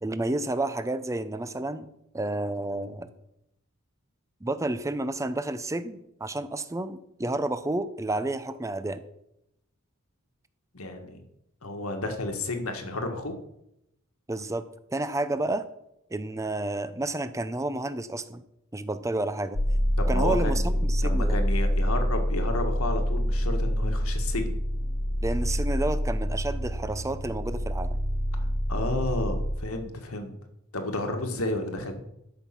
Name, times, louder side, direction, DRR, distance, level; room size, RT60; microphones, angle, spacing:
voice 1, 0.0-1.9 2.1-3.1 4.4-9.0 14.3-14.7 14.9-15.7 16.1-18.4 18.7-19.6 20.1-21.4 25.2-28.0, right 2 dB, 15° right, 12 dB, 0.6 m, -30 dB
voice 2, 10.7-11.2 11.6-13.3 20.0-20.7 21.0-24.6 28.7-30.3 30.7-31.9, left 2 dB, 85° left, 5 dB, 1.7 m, -31 dB
sound 1, 19.5-29.6, equal, 65° left, 1.3 m, -26 dB
12.5 x 5.5 x 5.9 m, 0.82 s
head